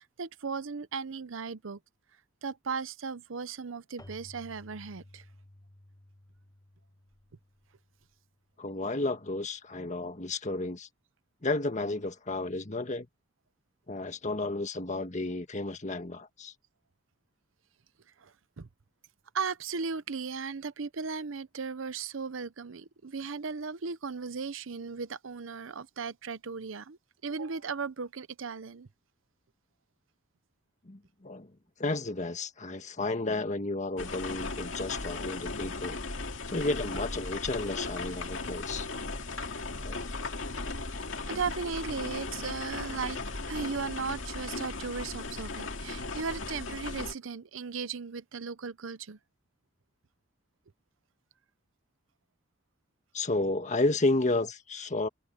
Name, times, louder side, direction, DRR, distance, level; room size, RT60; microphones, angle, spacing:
voice 1, 0.0-1.8 2.4-5.2 18.2-18.7 19.3-27.0 27.2-28.9 41.3-43.2 43.5-49.2, right 5 dB, 80° right, 0.7 m, -36 dB
Keyboard (musical), 4.0-8.5, left 1 dB, 20° left, 1.4 m, -54 dB
voice 2, 8.6-10.9 11.4-13.1 13.9-16.5 30.8-31.5 31.8-36.0 36.5-38.9 39.8-40.0 53.1-55.1, left 2 dB, 40° left, 1.6 m, -32 dB
sound 1, 34.0-47.1, left 3 dB, 70° left, 2.5 m, -37 dB
head